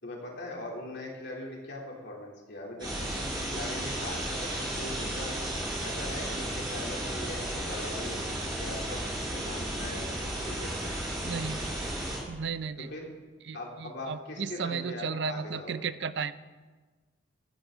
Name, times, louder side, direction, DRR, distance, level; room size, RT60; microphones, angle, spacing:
voice 1, 0.0-5.3 5.8-10.9 12.8-13.1 13.5-15.9, left 1 dB, 55° left, -2 dB, 3.4 m, -41 dB
sound 1, 2.8-12.2, right 1 dB, 20° right, 5.8 m, -34 dB
voice 2, 11.2-11.6 12.3-12.9 13.5-16.3, right 5 dB, 55° right, 14 dB, 0.5 m, -34 dB
16.0 x 15.0 x 3.9 m, 1.3 s
head